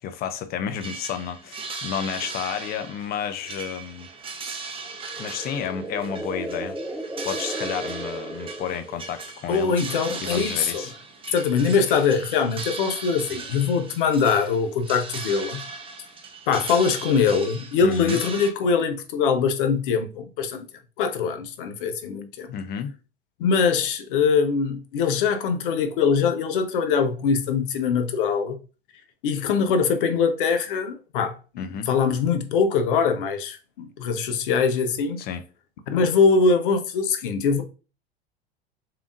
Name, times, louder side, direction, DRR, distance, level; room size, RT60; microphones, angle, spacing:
voice 1, 0.0-4.1 5.2-9.7 10.2-10.9 17.8-18.2 22.5-22.9 31.6-31.9 35.2-35.4, left 8 dB, 30° left, 0.6 m, -31 dB
sound 1, 0.7-18.5, right 4 dB, 15° right, 0.9 m, -38 dB
sound 2, 4.9-9.3, right 1 dB, 5° left, 1.9 m, -35 dB
voice 2, 9.5-10.8 11.3-15.6 16.5-20.7 21.0-22.6 23.4-28.6 29.2-35.3 35.9-37.6, left 5 dB, 55° left, 0.9 m, -22 dB
6.9 x 2.8 x 2.5 m
figure-of-eight pair, 80°, 31 cm